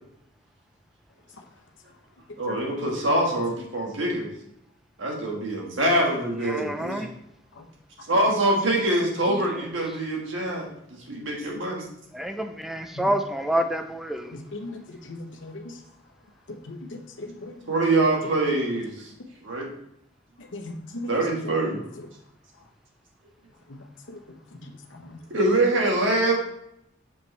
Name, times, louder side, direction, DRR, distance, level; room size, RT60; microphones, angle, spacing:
voice 1, 2.4-4.3 5.0-7.0 8.1-10.7 11.1-11.9 17.7-19.1 19.4-19.7 21.1-21.8 25.3-26.4, right 1 dB, 70° right, -1 dB, 1.7 m, -24 dB
voice 2, 6.4-7.1 12.1-14.3, right 1 dB, ahead, 6 dB, 0.5 m, -28 dB
voice 3, 14.3-15.6 16.7-16.8 17.2-17.6 20.5-21.1 24.1-24.2 24.6-24.7, left 2 dB, 70° left, 4 dB, 0.9 m, -37 dB
6.8 x 5.4 x 3.3 m, 0.78 s
head